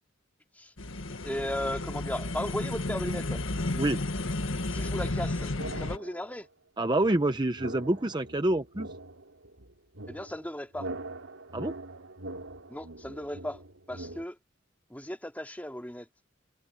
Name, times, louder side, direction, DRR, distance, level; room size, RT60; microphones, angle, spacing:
sound 1, 0.8-6.0, left 2 dB, 75° left, 1.8 m, -32 dB
voice 1, 1.2-3.4 4.7-6.5 10.1-10.9 12.7-13.6 13.9-14.4 14.9-16.1, left 1 dB, 10° left, 2.7 m, -36 dB
sound 2, 5.6-6.4 7.0-14.2, right 2 dB, 80° right, 2.8 m, -43 dB
voice 2, 6.8-8.9 11.5-11.7, right 1 dB, 20° right, 0.7 m, -27 dB
head